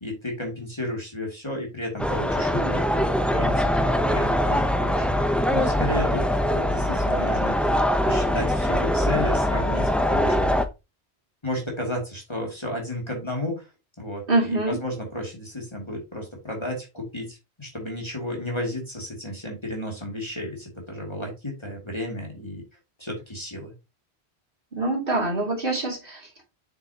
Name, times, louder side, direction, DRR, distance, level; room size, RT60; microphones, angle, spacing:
voice 1, 0.0-5.1 5.5-7.7 8.0-10.5 11.4-13.7 14.0-22.6 23.0-23.7, left 1 dB, 25° left, 0 dB, 2.4 m, -33 dB
sound 1, 2.0-10.7, equal, ahead, 0.5 m, -23 dB
voice 2, 14.3-14.8 24.7-26.4, right 2 dB, 55° right, -1 dB, 2.7 m, -25 dB
7.6 x 6.6 x 2.8 m, 0.25 s
omnidirectional pair, 1.1 m